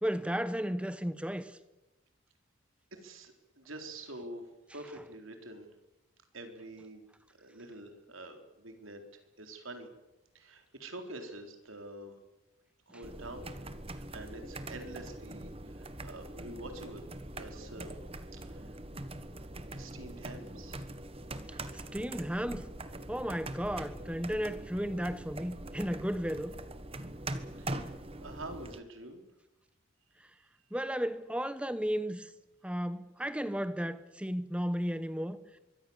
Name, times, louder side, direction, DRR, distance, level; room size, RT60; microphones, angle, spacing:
voice 1, 0.0-1.6 21.5-22.7 23.1-26.5 30.7-32.3 32.6-35.4, equal, 5° right, 1.0 m, -34 dB
voice 2, 2.9-4.4 4.7-5.7 6.3-7.1 7.4-9.9 10.3-12.2 12.9-13.6 13.9-17.1 17.4-17.9 18.3-18.8 19.8-20.8 27.6-27.9 28.2-29.2, right 1 dB, 80° right, 4.1 m, -46 dB
sound 1, 13.0-28.8, right 1 dB, 30° right, 1.4 m, -43 dB
25.5 x 23.5 x 7.3 m
head